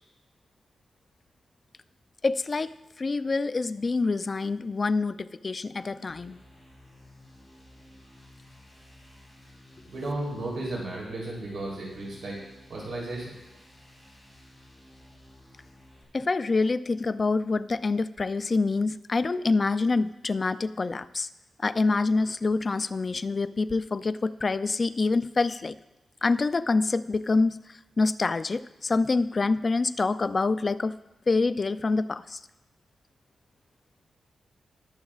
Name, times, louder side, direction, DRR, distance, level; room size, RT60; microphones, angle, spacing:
voice 1, 2.2-6.4 16.1-21.3 21.6-25.7 26.2-27.6 28.0-30.9 31.3-32.4, left 3 dB, 35° left, 12 dB, 0.4 m, -26 dB
sound 1, 6.1-16.0, left 1 dB, 5° right, 3.5 m, -54 dB
voice 2, 9.9-12.4 12.7-13.3, right 2 dB, 65° right, -4 dB, 3.3 m, -34 dB
21.0 x 7.2 x 2.4 m, 0.99 s
wide cardioid pair, 125°, 0 cm